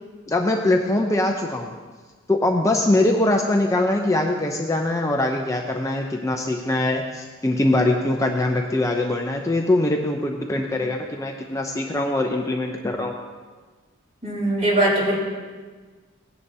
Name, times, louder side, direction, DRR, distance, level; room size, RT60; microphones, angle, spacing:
voice 1, 0.3-1.7 2.3-13.1, left 1 dB, 15° left, 1 dB, 0.5 m, -22 dB
voice 2, 14.2-15.2, right 1 dB, 35° right, -4 dB, 3.6 m, -20 dB
17.5 x 10.0 x 2.7 m, 1.4 s
head